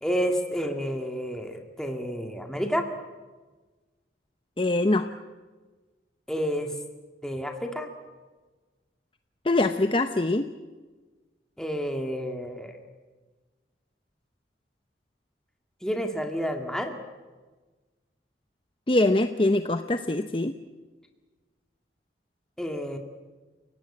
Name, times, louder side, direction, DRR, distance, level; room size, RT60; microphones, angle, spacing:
voice 1, 0.0-2.9 6.3-6.7 7.2-7.9 11.6-12.8 15.8-17.0 22.6-23.0, equal, 5° left, 4 dB, 2.0 m, -30 dB
voice 2, 4.6-5.1 9.4-10.5 18.9-20.6, left 2 dB, 30° left, 8 dB, 0.8 m, -23 dB
29.5 x 18.0 x 8.7 m, 1.3 s
head